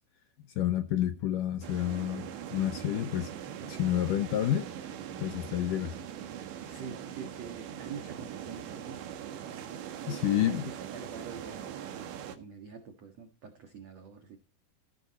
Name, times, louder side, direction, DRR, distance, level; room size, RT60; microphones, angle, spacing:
voice 1, 0.6-3.3 3.6-4.7 5.2-6.0 10.1-10.7, left 12 dB, 80° left, 1.9 m, -29 dB
sound 1, 1.6-12.4, right 9 dB, 80° right, 4.0 m, -41 dB
voice 2, 6.6-9.0 10.0-10.6 10.9-14.4, right 5 dB, 50° right, 2.2 m, -46 dB
15.5 x 13.0 x 4.2 m
omnidirectional pair, 5.0 m